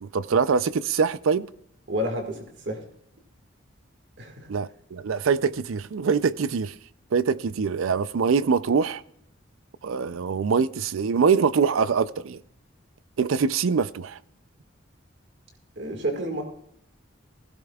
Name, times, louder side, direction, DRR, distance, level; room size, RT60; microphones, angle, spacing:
voice 1, 0.0-1.5 4.5-6.7 7.1-9.0 9.8-12.4 13.2-14.2, right 5 dB, 85° right, 0.4 m, -24 dB
voice 2, 1.9-2.4 2.7-2.8 4.2-4.5 15.8-16.4, equal, 60° right, 1.8 m, -29 dB
16.0 x 15.5 x 2.3 m
head